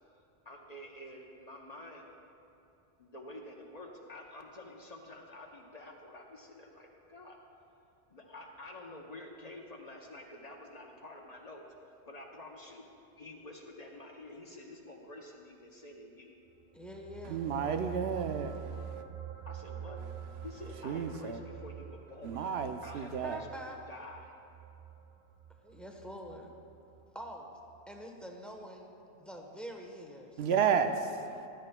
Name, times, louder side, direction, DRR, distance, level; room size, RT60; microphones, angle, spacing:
voice 1, 0.4-2.1 3.0-7.4 8.1-12.8 13.2-16.3 19.4-20.0 20.4-22.5 22.8-23.5 23.9-24.3, left 1 dB, 40° left, 0.9 m, -49 dB
sound 1, 16.6-27.4 27.7-27.8, right 8 dB, 45° right, 0.4 m, -47 dB
voice 2, 16.7-17.5 23.2-23.8 25.6-26.5 27.1-27.5 27.9-28.9 29.2-30.5, equal, ahead, 0.9 m, -45 dB
voice 3, 17.3-18.6 20.8-21.4 22.2-23.4 30.4-31.1, right 7 dB, 75° right, 0.8 m, -31 dB
15.5 x 12.5 x 2.2 m
omnidirectional pair, 1.1 m